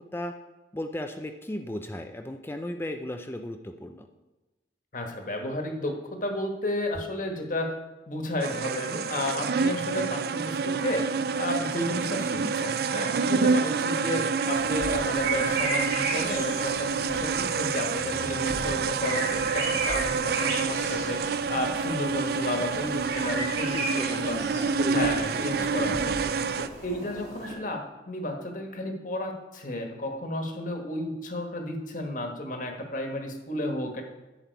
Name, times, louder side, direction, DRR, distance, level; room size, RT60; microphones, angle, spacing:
voice 1, 0.7-4.1 12.3-12.5 14.2-14.3 23.7-26.0, left 1 dB, 15° left, 6 dB, 0.4 m, -36 dB
voice 2, 4.9-7.7 8.1-21.2 21.5-24.4 24.9-26.2 26.6-34.0, left 1 dB, 45° left, 3 dB, 1.4 m, -32 dB
sound 1, 8.4-26.7, right 5 dB, 60° right, 0.4 m, -28 dB
sound 2, 14.5-27.5, right 2 dB, 80° right, 3.0 m, -35 dB
10.5 x 7.6 x 4.7 m, 1.1 s
head